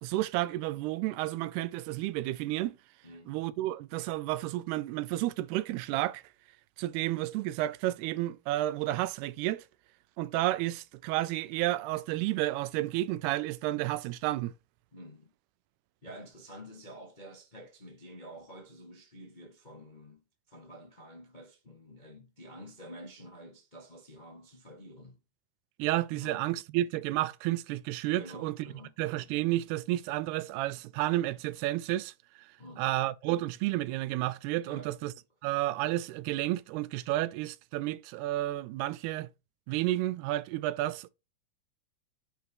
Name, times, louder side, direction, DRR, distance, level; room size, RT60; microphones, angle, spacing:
voice 1, 0.0-2.8 3.3-6.2 6.8-9.7 10.2-14.5 25.8-28.7 29.0-32.5 32.8-35.1 35.4-39.3 39.7-41.1, right 16 dB, 85° right, 2.7 m, -31 dB
voice 2, 3.0-3.3 14.9-15.3 16.0-20.2 20.5-25.2 26.1-26.4 28.2-28.9 32.6-32.9 34.6-34.9, equal, 40° left, 0.6 m, -49 dB
9.3 x 5.7 x 4.7 m
omnidirectional pair, 4.5 m